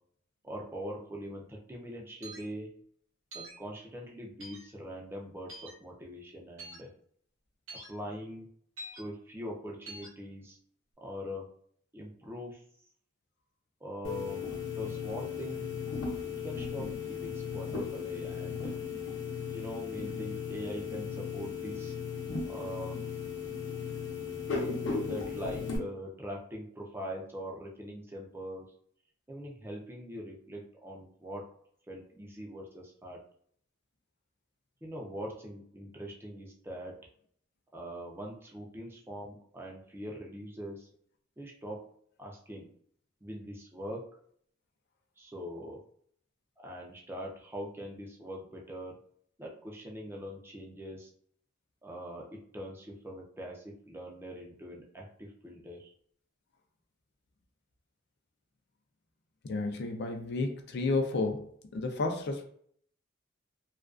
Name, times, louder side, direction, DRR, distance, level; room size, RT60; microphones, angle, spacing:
voice 1, 0.4-2.7 3.3-6.9 7.9-8.5 9.0-10.6 11.0-11.4 11.9-12.6 13.8-14.5 14.8-15.8 16.2-18.7 19.5-21.9 22.4-23.0 25.0-28.6 29.3-31.4 31.9-33.2 34.8-36.9 37.7-40.9 41.4-41.8 42.2-42.7 43.2-44.1 45.2-45.8 46.6-48.9 49.4-51.1 51.8-55.9, equal, 10° right, -2 dB, 0.4 m, -42 dB
sound 1, 2.2-2.5 3.3-3.6 4.4-4.6 5.5-5.7 6.6-6.8 7.7-7.9 8.8-9.0 9.9-10.1, right 1 dB, 75° right, 0.8 m, -45 dB
sound 2, 14.0-25.8, left 5 dB, 80° left, 0.8 m, -36 dB
voice 2, 59.4-62.4, left 3 dB, 55° left, 5 dB, 0.4 m, -32 dB
2.3 x 2.3 x 2.3 m, 0.62 s
head